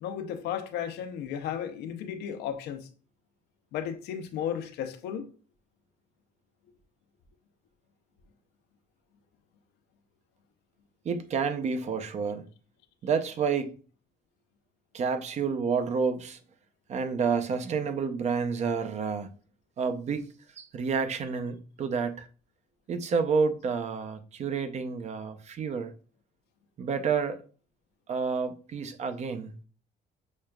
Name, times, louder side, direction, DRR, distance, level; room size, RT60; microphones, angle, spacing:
voice 1, 0.0-2.9 3.7-5.3, left 9 dB, 80° left, 0.6 m, -34 dB
voice 2, 11.0-12.5 13.0-13.7 14.9-16.4 16.9-19.3 19.8-20.3 20.6-22.3 22.9-25.9 26.8-27.4 28.1-29.5, right 5 dB, 40° right, 0.5 m, -29 dB
6.3 x 2.3 x 2.2 m
cardioid pair, 110°, 17 cm